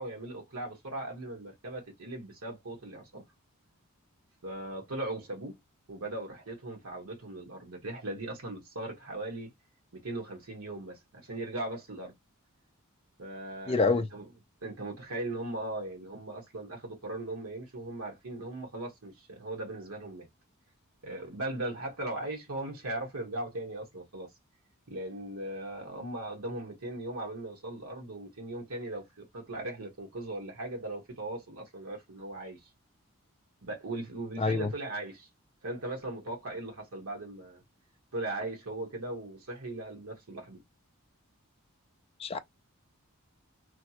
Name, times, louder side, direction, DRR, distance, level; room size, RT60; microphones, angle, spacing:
voice 1, 0.0-3.2 4.4-5.6 5.9-9.5 10.0-12.1 13.2-14.3 14.6-20.3 21.0-24.3 24.9-32.6 33.6-35.3 35.6-37.6 38.1-40.6, right 2 dB, 75° right, 1.3 m, -38 dB
voice 2, 13.7-14.1 34.4-34.7 42.2-42.4, left 3 dB, 25° left, 0.3 m, -26 dB
3.2 x 2.1 x 2.8 m
head